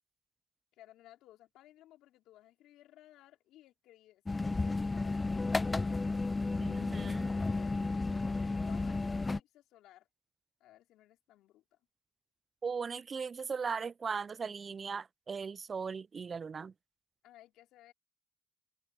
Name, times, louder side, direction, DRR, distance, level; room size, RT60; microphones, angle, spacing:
voice 1, 0.7-4.2 4.5-5.5 7.4-7.9 8.6-10.1 10.6-11.8 17.2-17.9, left 14 dB, 80° left, 4.1 m, -59 dB
sound 1, 4.3-9.4, left 3 dB, 25° left, 0.3 m, -32 dB
voice 2, 6.6-7.3 12.6-16.7, right 5 dB, 45° right, 0.4 m, -38 dB
open air
hypercardioid pair, 50°, 0 cm